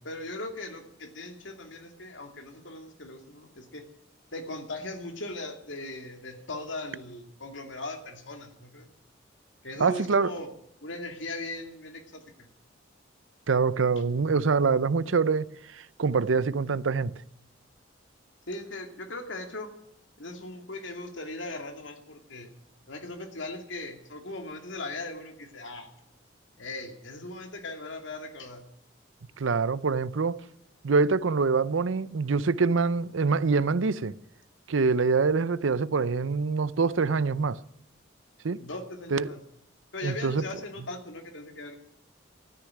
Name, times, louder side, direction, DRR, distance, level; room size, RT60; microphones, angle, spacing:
voice 1, 0.0-3.8 4.3-8.9 9.6-10.5 10.8-12.2 18.5-19.7 20.2-22.5 22.9-25.9 26.6-28.7 38.6-39.4 39.9-41.8, left 2 dB, 75° left, 2.5 m, -39 dB
voice 2, 9.8-10.3 13.5-17.1 29.4-30.4 30.8-34.1 34.7-37.6 38.4-38.6 39.1-39.3 40.0-40.4, right 4 dB, 90° right, 0.6 m, -25 dB
13.5 x 10.0 x 9.5 m
head